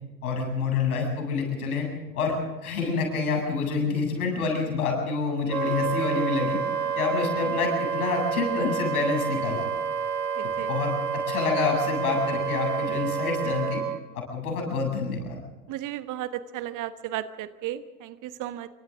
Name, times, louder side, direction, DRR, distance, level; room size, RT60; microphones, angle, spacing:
voice 1, 0.2-1.9 2.1-2.4 2.6-6.6 6.9-9.7 10.7-10.9 11.3-13.8 14.1-15.4, left 4 dB, 70° left, 1 dB, 8.0 m, -27 dB
Wind instrument woodwind instrument, 5.5-14.0, right 6 dB, 85° right, 1.8 m, -29 dB
voice 2, 10.4-10.7 15.7-18.7, right 12 dB, 40° right, 12 dB, 1.3 m, -34 dB
27.5 x 24.5 x 3.8 m, 1.2 s
figure-of-eight pair, 70°, 46 cm